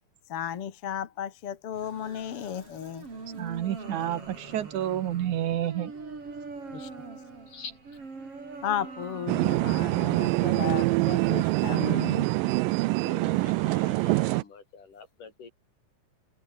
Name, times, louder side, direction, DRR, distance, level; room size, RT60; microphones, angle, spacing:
voice 1, 0.3-3.1 6.7-6.9 8.6-12.3, left 9 dB, 50° left, 2.2 m, -34 dB
sound 1, 1.7-13.0, right 4 dB, 45° right, 6.1 m, -44 dB
voice 2, 3.4-5.9, right 11 dB, 70° right, 2.6 m, -29 dB
voice 3, 7.5-7.8 13.0-15.5, left 5 dB, 70° left, 6.8 m, -45 dB
sound 2, 9.3-14.4, right 22 dB, 90° right, 2.3 m, -25 dB
open air
omnidirectional pair, 3.8 m